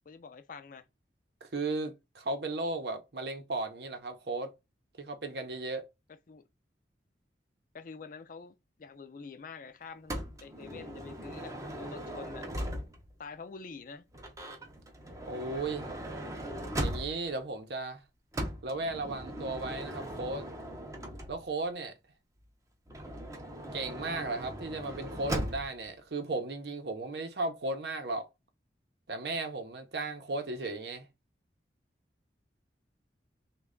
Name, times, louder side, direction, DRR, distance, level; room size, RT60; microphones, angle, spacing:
voice 1, 0.1-0.9 6.3-6.4 7.7-12.5 13.2-14.1, left 5 dB, 50° left, 0.4 m, -46 dB
voice 2, 1.4-4.5 5.0-5.9 15.3-15.9 16.8-18.0 18.6-20.5 21.3-21.9 23.7-28.3 29.1-31.1, right 2 dB, 65° right, 0.7 m, -35 dB
Motor vehicle (road) / Sliding door, 10.1-13.2 14.1-17.4 18.3-21.6 22.9-25.8, right 1 dB, 20° right, 0.6 m, -39 dB
3.2 x 2.3 x 3.6 m
head